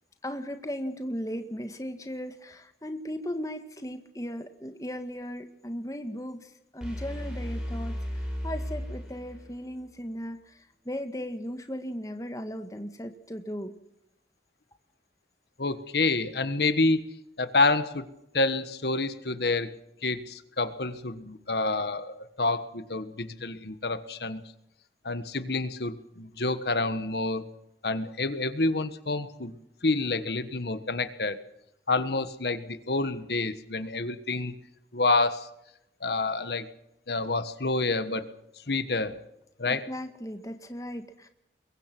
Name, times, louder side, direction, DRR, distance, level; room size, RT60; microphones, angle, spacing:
voice 1, 0.2-13.7 39.7-41.3, equal, 20° left, 7 dB, 1.7 m, -37 dB
sound 1, 6.8-9.7, equal, 5° right, 7.5 m, -35 dB
voice 2, 15.6-17.0 17.4-18.0 18.3-19.7 20.0-24.4 25.0-27.5 27.8-29.5 29.8-31.4 31.9-34.5 34.9-35.5 36.0-36.6 37.1-38.3 38.7-39.1 39.6-39.8, left 3 dB, 70° left, 12 dB, 1.4 m, -28 dB
23.0 x 22.5 x 6.1 m, 0.83 s
head